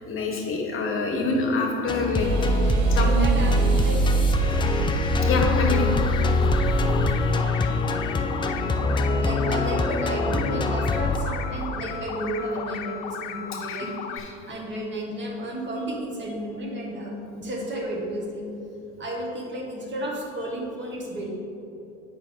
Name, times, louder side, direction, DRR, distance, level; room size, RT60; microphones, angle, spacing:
voice 1, 0.0-2.3 2.9-3.2 5.2-6.0 8.4-8.5 13.7-13.9 14.2-14.3, left 2 dB, 35° left, 0 dB, 1.2 m, -26 dB
sound 1, 1.9-11.2, left 1 dB, 15° left, 0.4 m, -23 dB
sound 2, 2.2-7.4, right 7 dB, 50° right, 0.6 m, -33 dB
voice 2, 2.6-4.0 8.7-8.9 9.2-14.0 14.4-18.5 19.0-21.3, right 1 dB, 30° right, -1 dB, 1.4 m, -32 dB
sound 3, 5.4-14.2, left 8 dB, 70° left, 0.6 m, -36 dB
7.3 x 5.4 x 3.6 m, 2.9 s
hypercardioid pair, 70°, 36 cm